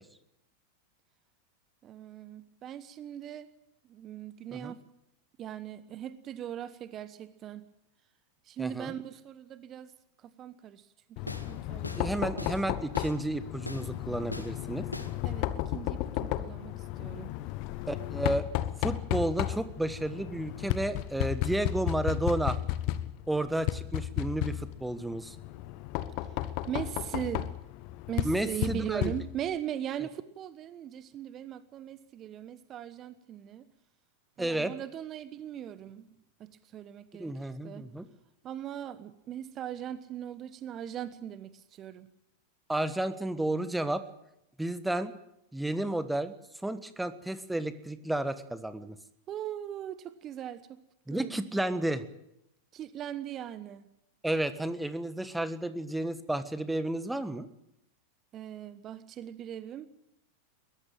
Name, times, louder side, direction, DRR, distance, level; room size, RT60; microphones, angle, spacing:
voice 1, 1.8-3.5 3.9-4.8 5.4-7.7 8.4-9.9 10.2-12.5 15.2-17.3 26.7-27.5 28.1-33.6 34.4-36.1 36.4-37.9 38.4-42.1 49.3-50.6 51.1-51.4 52.7-53.8 58.3-59.9, right 10 dB, 30° right, 14 dB, 1.1 m, -39 dB
voice 2, 8.6-8.9 12.0-14.9 17.9-18.4 18.8-22.6 23.3-25.4 28.2-29.1 34.4-34.7 37.2-38.1 42.7-44.0 44.6-45.1 45.5-46.3 46.6-49.0 51.1-52.0 54.2-57.5, right 1 dB, 5° right, 13 dB, 1.4 m, -32 dB
Knock, 11.2-29.6, left 14 dB, 45° left, 1.2 m, -34 dB
sound 1, 11.3-11.5 11.8-12.1 12.4-12.6 12.9-13.2 13.7-13.9 14.3-14.5 14.9-15.2, left 1 dB, 85° left, 1.9 m, -40 dB
22.0 x 18.0 x 9.0 m, 0.82 s
figure-of-eight pair, 90°, 0 cm